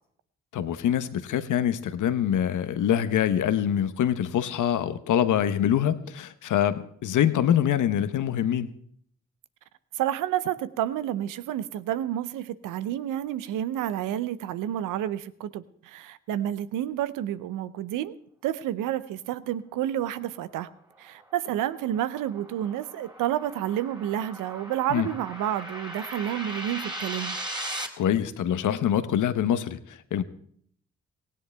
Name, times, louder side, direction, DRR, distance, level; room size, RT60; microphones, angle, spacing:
voice 1, 0.5-8.7 24.9-25.1 28.0-30.2, left 10 dB, 75° left, 1.0 m, -25 dB
voice 2, 9.9-18.2 18.4-20.7 21.0-27.4, right 11 dB, 85° right, 0.7 m, -30 dB
sound 1, 21.0-27.9, right 1 dB, 15° right, 3.0 m, -38 dB
17.5 x 16.5 x 3.4 m
supercardioid pair, 40°, 31 cm